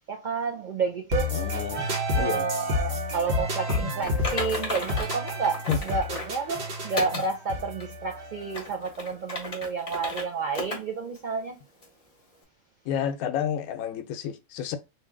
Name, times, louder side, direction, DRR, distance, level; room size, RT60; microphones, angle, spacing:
voice 1, 0.1-1.3 2.1-11.6, right 4 dB, 85° right, 0.4 m, -30 dB
sound 1, 1.1-8.9, left 1 dB, 50° right, 1.2 m, -30 dB
voice 2, 1.3-1.9 2.1-2.5 3.7-3.9 5.7-5.8 7.1-7.2 12.8-14.8, left 9 dB, 80° left, 1.0 m, -30 dB
Typing, 4.0-6.4 7.0-7.3 7.8-7.9 8.4-10.2 10.5-10.8 11.1-11.2 11.8-11.9, left 2 dB, 30° left, 0.9 m, -34 dB
2.9 x 2.7 x 3.5 m
omnidirectional pair, 1.5 m